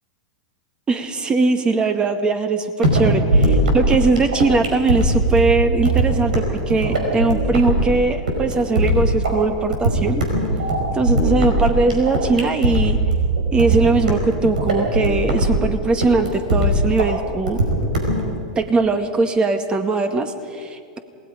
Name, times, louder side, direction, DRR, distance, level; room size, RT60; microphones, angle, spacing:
voice 1, 0.9-10.2 10.9-13.0 13.5-17.6 18.6-21.0, right 3 dB, 20° right, 8 dB, 2.0 m, -20 dB
sound 1, 2.8-18.3, right 2 dB, 80° right, 5.2 m, -20 dB
27.5 x 19.0 x 5.2 m, 2.1 s
hypercardioid pair, 105°, 4 cm